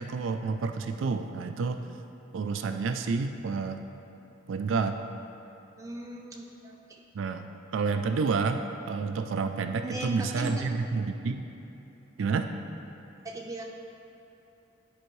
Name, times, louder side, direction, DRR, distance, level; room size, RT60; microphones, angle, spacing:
voice 1, 0.0-1.9 2.3-3.8 4.5-5.0 7.1-7.5 7.7-11.5 12.2-12.5, right 4 dB, 90° right, 7 dB, 0.4 m, -29 dB
voice 2, 5.8-6.8 9.8-10.6 13.2-13.6, right 1 dB, 15° right, -2 dB, 0.6 m, -38 dB
10.5 x 4.4 x 3.1 m, 3.0 s
head